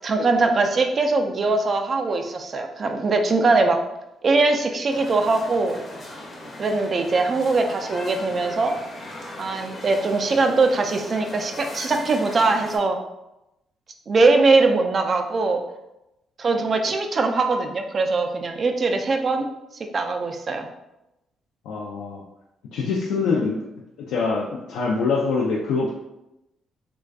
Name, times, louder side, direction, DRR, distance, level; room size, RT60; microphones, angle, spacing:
voice 1, 0.0-3.8 4.2-5.8 6.6-8.7 9.4-13.0 14.1-15.6 16.4-19.5 19.7-20.7, right 3 dB, 45° right, 5 dB, 0.3 m, -21 dB
sound 1, 4.9-12.8, left 1 dB, 35° left, 0.5 m, -38 dB
voice 2, 21.7-22.2 22.7-23.7 24.1-25.9, left 4 dB, 90° left, -3 dB, 0.3 m, -24 dB
2.5 x 2.2 x 2.3 m, 0.90 s
cardioid pair, 90°, 0 cm